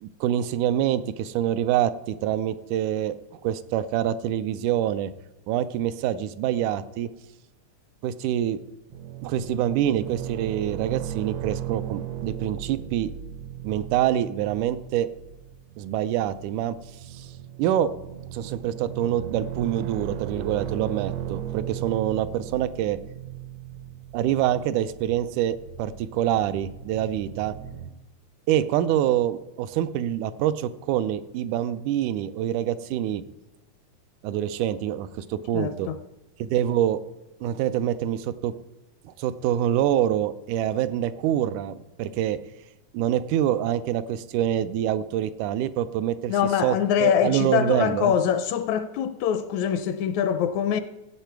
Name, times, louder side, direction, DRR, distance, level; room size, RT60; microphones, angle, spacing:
voice 1, 0.0-3.2 3.4-5.1 5.5-7.1 8.0-8.6 9.2-13.1 13.6-15.1 15.8-16.8 17.1-17.3 17.6-17.9 18.3-23.0 24.1-27.5 28.5-33.2 34.2-35.9 36.4-37.0 37.4-38.5 39.1-42.4 42.9-46.3 46.6-48.1, right 11 dB, 90° right, 2.1 m, -26 dB
sound 1, 8.9-27.9, right 10 dB, 75° right, 1.8 m, -37 dB
voice 2, 35.5-36.0 46.3-50.8, left 9 dB, 80° left, 1.8 m, -24 dB
15.5 x 8.3 x 4.6 m
omnidirectional pair, 3.4 m